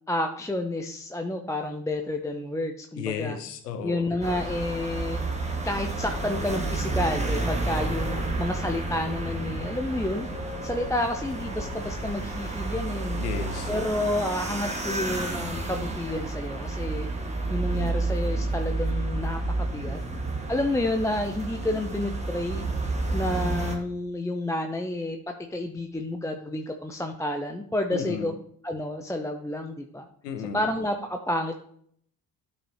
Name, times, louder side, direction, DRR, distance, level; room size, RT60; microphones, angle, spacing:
voice 1, 0.1-3.4 3.8-5.2 5.6-10.3 10.6-13.2 13.7-17.1 17.5-20.0 20.5-22.6 23.1-25.2 25.5-28.4 28.6-30.0 30.5-31.6, left 1 dB, 5° left, 4 dB, 0.6 m, -30 dB
voice 2, 3.0-4.1 13.2-13.7 27.9-28.3 30.2-30.6, left 7 dB, 85° left, 9 dB, 0.8 m, -33 dB
sound 1, 4.2-23.8, right 2 dB, 15° right, 1.6 m, -30 dB
12.0 x 4.6 x 2.8 m, 0.63 s
figure-of-eight pair, 45°, 47 cm